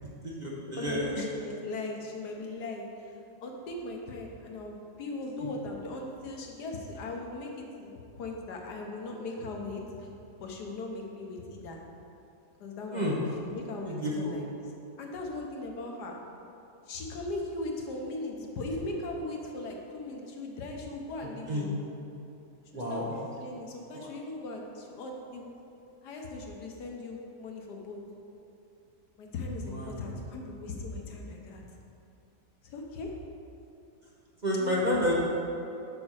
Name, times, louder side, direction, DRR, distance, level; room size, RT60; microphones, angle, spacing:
voice 1, 0.2-1.2 5.4-5.5 12.9-13.2 13.9-14.4 21.2-21.7 22.7-23.1 23.9-24.1 29.7-29.9 34.4-35.1, equal, 35° right, -4 dB, 0.9 m, -30 dB
voice 2, 0.7-3.1 3.4-7.9 8.2-10.1 10.4-11.8 12.6-13.1 13.4-14.5 15.0-16.1 16.9-21.8 22.7-25.6 26.0-28.0 29.2-31.6 32.6-33.1 34.6-35.1, left 2 dB, 85° left, 1 dB, 1.6 m, -38 dB
6.8 x 5.2 x 6.3 m, 2.7 s
omnidirectional pair, 1.7 m